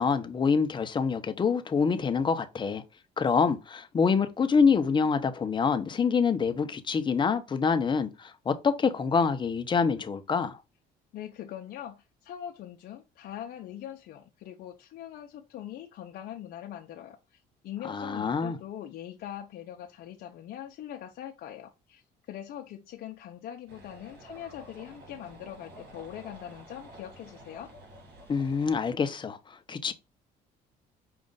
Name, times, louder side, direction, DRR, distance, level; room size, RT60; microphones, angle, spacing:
voice 1, 0.0-2.8 3.2-10.6 17.8-18.6 28.3-29.9, left 5 dB, 30° left, 0.6 m, -26 dB
voice 2, 11.1-27.7, left 11 dB, 65° left, 0.6 m, -42 dB
sound 1, 23.7-28.8, right 1 dB, 75° right, 1.9 m, -50 dB
5.2 x 2.4 x 3.8 m
cardioid pair, 110°, 17 cm